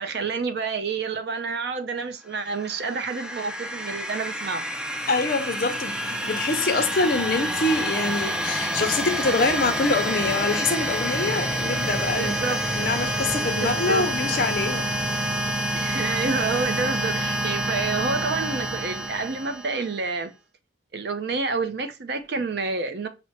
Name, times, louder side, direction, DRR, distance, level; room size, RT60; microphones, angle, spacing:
voice 1, 0.0-4.7 12.2-12.6 13.6-14.1 15.7-20.3 20.9-23.1, right 4 dB, 60° right, 0.5 m, -28 dB
sound 1, 2.4-20.0, equal, 5° right, 0.3 m, -28 dB
voice 2, 5.1-14.9, left 3 dB, 50° left, 0.6 m, -25 dB
5.7 x 2.1 x 2.8 m
head